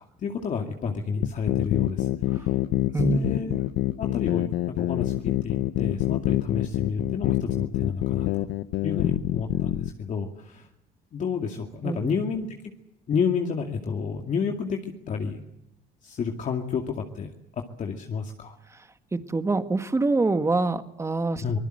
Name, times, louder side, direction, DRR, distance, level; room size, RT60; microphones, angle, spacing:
voice 1, 0.0-2.6 3.0-3.6 4.0-8.4 8.8-10.7 11.1-12.7 13.1-15.5 16.0-18.6 21.4-21.6, left 6 dB, 50° left, 3 dB, 2.3 m, -30 dB
sound 1, 1.2-9.9, left 15 dB, 90° left, 1.0 m, -26 dB
voice 2, 2.9-3.4 11.8-12.1 18.7-18.8 19.1-21.6, right 3 dB, 15° right, 9 dB, 1.8 m, -25 dB
25.0 x 20.5 x 7.9 m, 0.86 s
cardioid pair, 110°, 17 cm